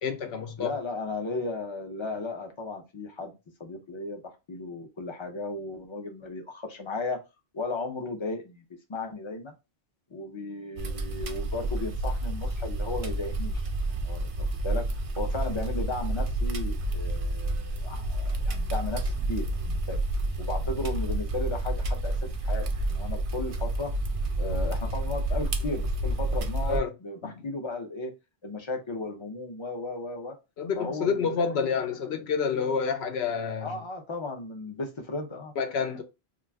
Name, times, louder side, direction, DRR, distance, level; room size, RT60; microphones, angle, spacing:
voice 1, 0.0-0.7 26.7-26.9 27.2-27.3 30.6-33.8 35.6-36.0, left 6 dB, 75° left, 0.8 m, -28 dB
voice 2, 0.6-3.3 3.6-4.2 4.5-7.2 7.5-8.6 8.9-9.5 10.1-13.7 14.0-14.3 14.6-14.8 15.2-20.0 20.4-22.1 22.4-23.9 24.4-28.1 28.4-30.4 30.8-31.3 31.5-31.9 33.6-35.5, left 2 dB, 40° left, 0.5 m, -35 dB
sound 1, 10.8-26.8, right 1 dB, 60° right, 0.3 m, -29 dB
2.4 x 2.3 x 3.3 m
omnidirectional pair, 1.1 m